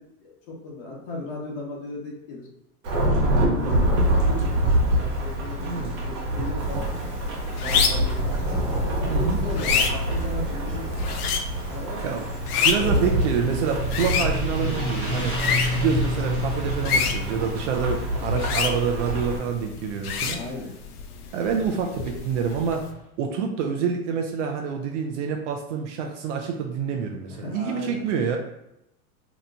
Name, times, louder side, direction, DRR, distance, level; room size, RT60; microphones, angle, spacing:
voice 1, 0.0-2.5 3.1-6.8 7.2-8.4 8.7-10.9 11.6-12.2 12.8-13.6 20.3-20.7 27.3-28.1, left 2 dB, 45° left, -4 dB, 0.9 m, -37 dB
Thunderstorm / Rain, 2.8-19.4, right 1 dB, 70° right, 1.3 m, -26 dB
sound 1, 6.6-22.9, left 6 dB, 85° left, 0.6 m, -30 dB
voice 2, 9.1-9.4 12.0-12.2 12.6-15.4 15.7-20.4 21.3-22.8 23.2-28.4, right 6 dB, 55° right, 3 dB, 0.5 m, -27 dB
Motorcycle, 11.9-23.0, left 1 dB, 15° left, 0.8 m, -34 dB
2.9 x 2.2 x 3.8 m, 0.86 s
supercardioid pair, 150°, 45 cm